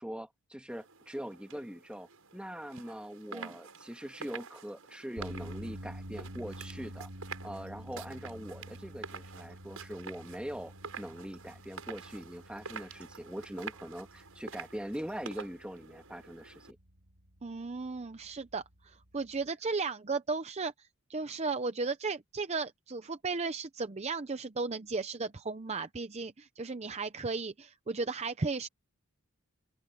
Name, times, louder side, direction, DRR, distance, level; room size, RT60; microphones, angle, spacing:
voice 1, 0.0-7.1 7.4-16.8, equal, 5° right, 1.6 m, -42 dB
sound 1, 0.7-16.7, right 5 dB, 70° right, 7.3 m, -48 dB
sound 2, 5.2-19.4, equal, 85° right, 4.7 m, -49 dB
voice 2, 17.4-28.7, right 4 dB, 30° right, 0.6 m, -35 dB
open air
head